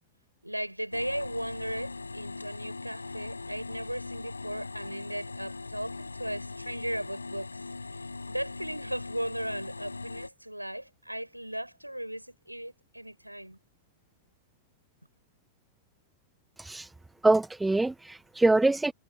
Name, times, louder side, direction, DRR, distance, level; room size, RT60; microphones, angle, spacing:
voice 1, 0.4-7.6 7.9-13.6, right 1 dB, 90° right, 7.1 m, -37 dB
sound 1, 0.9-10.3, left 3 dB, 80° left, 7.0 m, -40 dB
voice 2, 16.6-16.9 17.2-18.9, right 2 dB, 5° right, 1.1 m, -24 dB
figure-of-eight pair, 90°, 0 cm